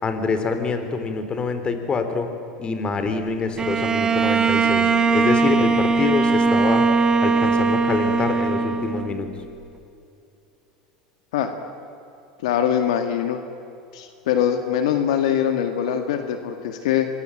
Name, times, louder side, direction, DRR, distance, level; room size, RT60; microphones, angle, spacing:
voice 1, 0.0-2.3 2.6-6.9 7.2-9.3, left 4 dB, 30° left, 8 dB, 3.9 m, -26 dB
Bowed string instrument, 3.6-9.3, right 4 dB, 25° right, 1.9 m, -20 dB
voice 2, 12.4-13.4 13.9-17.1, left 9 dB, 75° left, 7 dB, 2.0 m, -22 dB
26.0 x 21.5 x 9.1 m, 2.8 s
hypercardioid pair, 95°, 3 cm